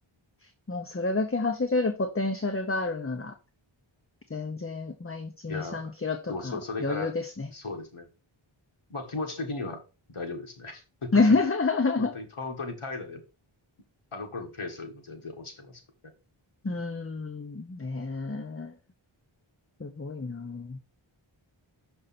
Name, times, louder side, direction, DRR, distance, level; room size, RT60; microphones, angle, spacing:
voice 1, 0.7-3.3 4.3-7.5 11.1-12.1 16.6-18.7 19.8-20.8, left 3 dB, 25° left, 7 dB, 0.8 m, -28 dB
voice 2, 5.5-5.9 6.3-7.1 7.5-8.1 8.9-9.8 10.1-11.1 12.0-13.2 14.1-15.8 16.6-16.8, left 3 dB, 80° left, 3 dB, 1.8 m, -36 dB
6.4 x 5.3 x 4.2 m, 0.31 s
wide cardioid pair, 55°, 49 cm